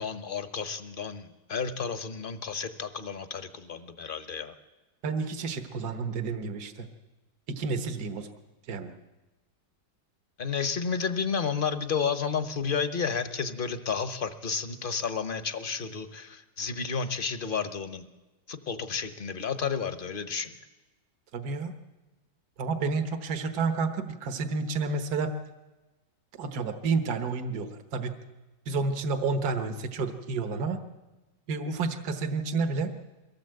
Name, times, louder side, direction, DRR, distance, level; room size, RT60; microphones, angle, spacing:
voice 1, 0.0-4.5 10.4-18.1 18.5-20.5, left 6 dB, 35° left, 10 dB, 1.0 m, -31 dB
voice 2, 5.0-6.9 7.5-8.3 8.7-8.9 21.3-21.7 22.6-25.3 26.4-28.2 28.7-30.8 31.5-32.9, right 4 dB, 65° right, 8 dB, 1.7 m, -30 dB
23.0 x 16.5 x 7.8 m, 1.1 s
omnidirectional pair, 1.9 m